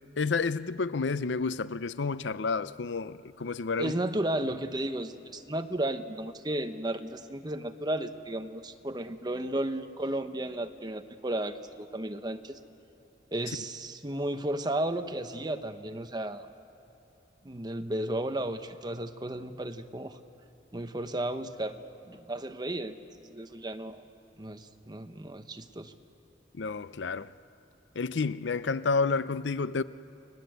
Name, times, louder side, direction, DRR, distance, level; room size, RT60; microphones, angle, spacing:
voice 1, 0.2-3.9 26.6-27.3 28.0-29.8, left 4 dB, 90° left, 0.6 m, -30 dB
voice 2, 3.8-12.6 13.3-16.5 17.4-20.2 20.7-21.8 22.1-22.9 23.3-24.0 24.4-25.9, right 1 dB, 25° right, 1.1 m, -34 dB
30.0 x 20.5 x 8.0 m
head